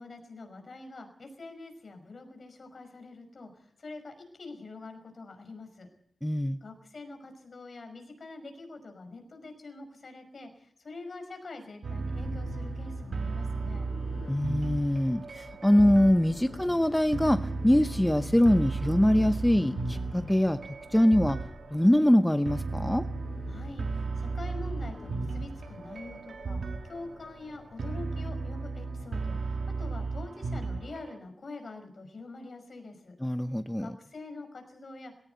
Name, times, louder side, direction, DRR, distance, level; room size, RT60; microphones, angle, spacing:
voice 1, 0.0-5.9 6.6-13.9 23.5-33.2 33.8-35.1, left 3 dB, 55° left, 5 dB, 5.6 m, -45 dB
voice 2, 6.2-6.6 14.3-20.6 20.9-21.4 21.7-23.1 33.2-34.0, left 1 dB, 5° left, 9 dB, 0.8 m, -23 dB
sound 1, 11.8-31.2, right 3 dB, 80° right, 1.6 m, -35 dB
sound 2, 12.0-28.0, left 4 dB, 80° left, 5.0 m, -47 dB
20.5 x 17.0 x 8.2 m, 0.63 s
wide cardioid pair, 120°, 0 cm